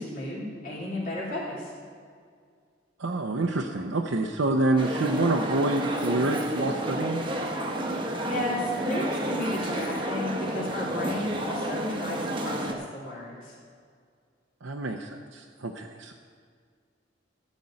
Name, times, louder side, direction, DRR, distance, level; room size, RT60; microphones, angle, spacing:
voice 1, 0.0-1.7 7.8-13.5, left 1 dB, 50° left, -7 dB, 3.1 m, -33 dB
voice 2, 3.0-7.2 14.6-16.1, right 2 dB, 90° right, 1 dB, 0.7 m, -27 dB
sound 1, 4.8-12.7, right 1 dB, 25° right, 1.0 m, -31 dB
13.5 x 5.4 x 8.7 m, 2.1 s
head